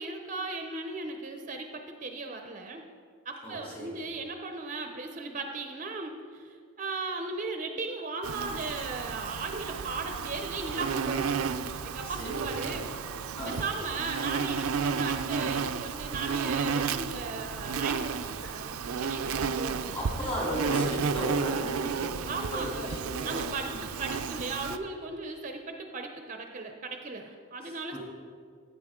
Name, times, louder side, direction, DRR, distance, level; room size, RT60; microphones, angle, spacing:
voice 1, 0.0-2.9 3.3-11.4 11.8-12.8 13.5-20.4 22.3-22.9 23.2-28.0, right 3 dB, 35° right, 5 dB, 0.6 m, -37 dB
voice 2, 3.4-4.1 12.0-12.8 13.3-13.6 18.4-18.7 19.9-22.2 22.5-23.9 27.6-28.0, equal, 25° left, -4 dB, 3.2 m, -36 dB
Insect, 8.2-24.8, right 6 dB, 90° right, 0.5 m, -32 dB
15.5 x 8.2 x 3.7 m, 2.1 s
head